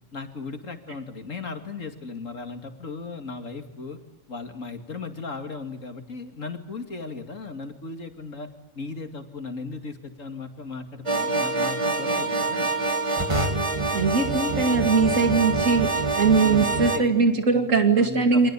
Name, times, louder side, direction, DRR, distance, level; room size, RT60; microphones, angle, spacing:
voice 1, 0.1-4.0 4.3-12.7 16.4-18.5, left 4 dB, 85° left, 6 dB, 2.9 m, -36 dB
sound 1, 11.1-17.0, right 3 dB, 25° right, 2.0 m, -25 dB
voice 2, 13.9-18.5, right 4 dB, 85° right, 6 dB, 2.7 m, -21 dB
28.5 x 24.5 x 8.4 m, 0.94 s
omnidirectional pair, 1.3 m